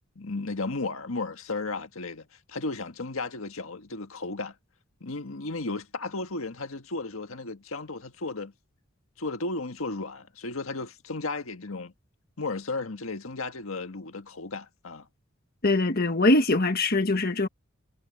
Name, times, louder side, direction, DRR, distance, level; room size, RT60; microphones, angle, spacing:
voice 1, 0.1-4.5 5.0-8.5 9.2-11.9 12.4-15.1, left 3 dB, 90° left, 1.6 m, -34 dB
voice 2, 15.6-17.5, left 2 dB, 50° left, 1.5 m, -22 dB
head